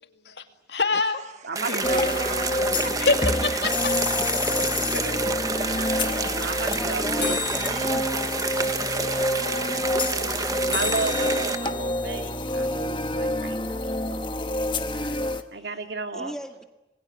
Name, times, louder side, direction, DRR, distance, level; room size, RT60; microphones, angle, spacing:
voice 1, 0.0-1.2 1.7-2.1 3.0-3.7, left 3 dB, 75° left, 7 dB, 2.3 m, -26 dB
voice 2, 0.9-3.0 3.8-4.2 4.5-4.6 5.6-5.7 6.0-6.6 7.1-8.0 8.8-10.3, right 4 dB, 40° right, 12 dB, 1.1 m, -40 dB
voice 3, 1.4-2.0 2.3-2.9 4.9-5.2 6.3-7.4 10.7-14.4 14.9-15.3 15.5-16.3, right 3 dB, 80° right, 6 dB, 2.4 m, -34 dB
sound 1, 1.6-11.6, right 4 dB, 20° right, 1.1 m, -29 dB
sound 2, 1.8-15.4, left 2 dB, 25° left, 1.4 m, -27 dB
voice 4, 6.6-8.4 15.6-15.7 16.1-16.6, equal, 5° left, 5 dB, 2.0 m, -39 dB
27.0 x 21.0 x 9.6 m, 0.97 s
head